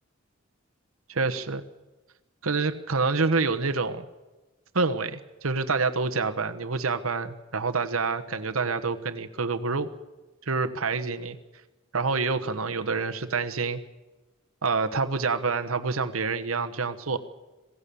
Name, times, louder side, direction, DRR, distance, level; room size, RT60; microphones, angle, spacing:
voice 1, 1.1-1.6 2.4-4.1 4.7-9.9 10.5-11.4 11.9-13.8 14.6-17.2, right 4 dB, 85° right, 8 dB, 1.3 m, -27 dB
27.0 x 17.0 x 7.0 m, 1.1 s
head